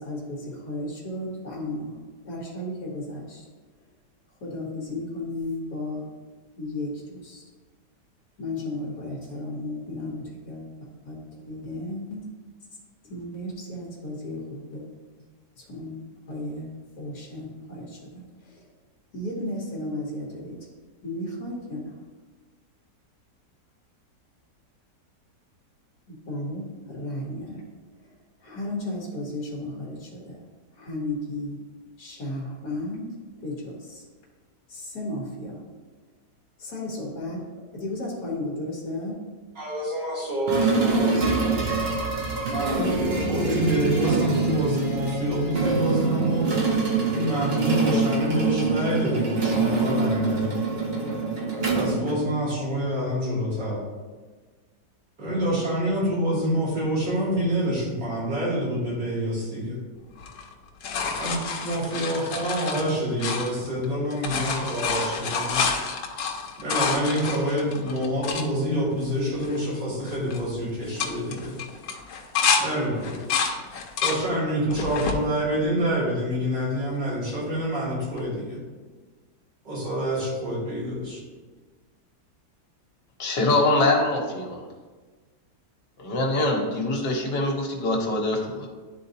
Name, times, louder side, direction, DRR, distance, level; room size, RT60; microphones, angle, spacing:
voice 1, 0.0-2.0 2.2-3.4 4.4-6.1 6.6-7.4 8.4-11.2 11.5-12.3 13.0-14.8 15.2-15.3 15.6-16.0 16.3-16.7 17.0-18.7 19.1-20.6 21.0-21.9 26.1-27.6 28.0-28.1 28.4-30.4 30.7-31.6 32.0-33.0 33.4-34.1 34.7-35.6 36.6-37.4 37.7-39.2 41.5-41.6 42.7-43.3, left 1 dB, 60° left, -4 dB, 1.6 m, -34 dB
voice 2, 39.6-41.2 42.5-46.5 47.1-50.6 51.7-53.8 55.2-59.8 61.2-65.6 66.6-71.5 72.6-73.2 74.0-78.6 79.6-81.2, equal, 75° right, -8 dB, 3.0 m, -27 dB
sound 1, 40.5-52.7, right 3 dB, 45° right, 0.9 m, -25 dB
sound 2, 60.2-63.8 64.1-68.5 69.0-69.1 69.3-69.8 70.1-70.4 70.8-72.6 73.0-74.2 74.7-75.2 75.8-76.6 78.2-78.3, left 5 dB, 90° left, 1.4 m, -28 dB
voice 3, 83.2-84.6 86.0-88.7, left 2 dB, 75° left, 0 dB, 1.7 m, -24 dB
11.0 x 3.9 x 2.7 m, 1.3 s
omnidirectional pair, 1.9 m